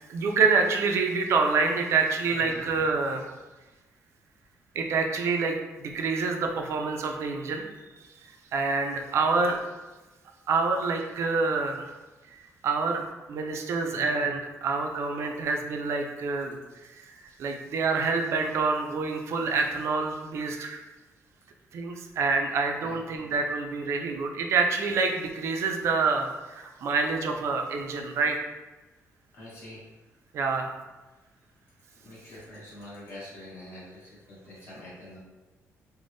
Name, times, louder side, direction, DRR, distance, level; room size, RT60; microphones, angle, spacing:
voice 1, 0.1-3.3 4.8-7.6 8.2-9.6 10.5-11.9 12.3-13.0 13.3-16.6 16.9-20.8 21.7-28.4 30.3-30.7, right 4 dB, 55° right, 3 dB, 0.4 m, -27 dB
voice 2, 29.3-29.8 32.0-35.2, left 1 dB, 50° left, -8 dB, 1.3 m, -45 dB
3.3 x 2.1 x 2.6 m, 1.2 s
cardioid pair, 170°, 6 cm